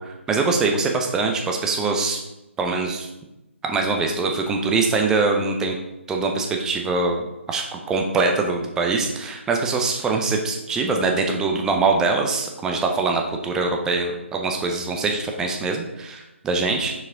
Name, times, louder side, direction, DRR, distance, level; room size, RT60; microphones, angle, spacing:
voice 1, 0.0-2.2 2.6-3.1 3.6-5.8 6.1-7.2 7.5-16.9, right 3 dB, 10° right, 3 dB, 0.5 m, -23 dB
6.1 x 4.6 x 3.7 m, 0.95 s
figure-of-eight pair, 150°, 7 cm